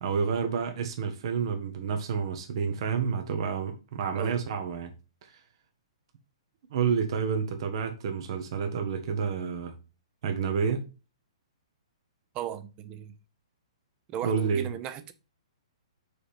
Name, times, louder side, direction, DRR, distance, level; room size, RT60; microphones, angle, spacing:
voice 1, 0.0-4.9 5.2-5.4 6.7-9.8 10.2-10.9 14.2-14.7, right 6 dB, 55° right, 1.2 m, -29 dB
voice 2, 12.3-13.1 14.1-15.1, right 10 dB, 30° right, 0.8 m, -36 dB
4.9 x 4.4 x 5.0 m
hypercardioid pair, 135°, 3 cm